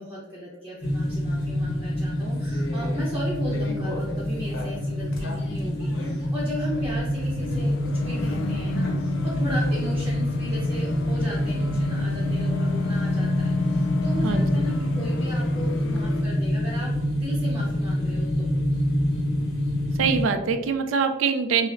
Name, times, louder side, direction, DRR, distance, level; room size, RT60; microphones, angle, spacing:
voice 1, 0.0-16.9 17.2-18.5, equal, 10° right, -8 dB, 0.7 m, -36 dB
sound 1, 0.8-20.2, left 1 dB, 85° left, 0.9 m, -26 dB
sound 2, 6.7-16.2, left 4 dB, 70° left, 0.4 m, -32 dB
voice 2, 20.0-21.7, right 5 dB, 80° right, 8 dB, 0.4 m, -23 dB
5.7 x 2.0 x 2.5 m, 1.0 s
head